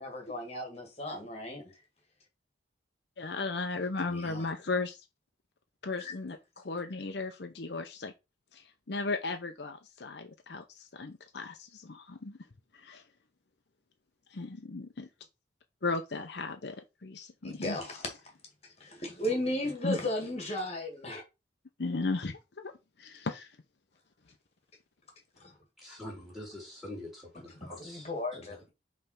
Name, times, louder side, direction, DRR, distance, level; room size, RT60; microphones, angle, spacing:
voice 1, 0.0-1.6 4.1-4.5 6.0-6.1 17.4-18.1 18.8-21.2 25.4-25.5 27.6-28.6, left 1 dB, 35° left, 1.8 m, -35 dB
voice 2, 3.2-5.0 5.8-8.1 8.5-12.4 12.7-13.0 14.3-15.1 15.8-17.8 19.8-20.0 21.8-22.7 23.0-23.5, left 3 dB, 60° left, 0.7 m, -36 dB
voice 3, 25.8-28.5, left 1 dB, ahead, 3.0 m, -45 dB
5.5 x 3.3 x 5.7 m
head